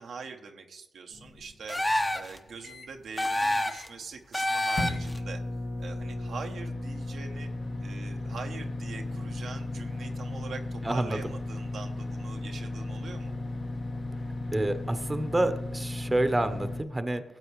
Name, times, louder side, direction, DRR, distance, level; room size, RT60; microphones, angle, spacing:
voice 1, 0.0-5.4 5.8-7.5 7.8-13.3, right 5 dB, 75° right, 4 dB, 1.0 m, -43 dB
sound 1, 1.1-2.9 3.3-3.4 3.6-4.1 4.8-16.8, left 2 dB, 55° left, 1.7 m, -35 dB
sound 2, 1.7-2.4 3.2-3.9 4.3-5.2, left 1 dB, 20° left, 1.1 m, -28 dB
voice 2, 10.8-11.2 14.5-17.2, right 1 dB, 25° right, 10 dB, 1.0 m, -28 dB
16.0 x 7.9 x 3.2 m, 0.88 s
supercardioid pair, 40°, 0 cm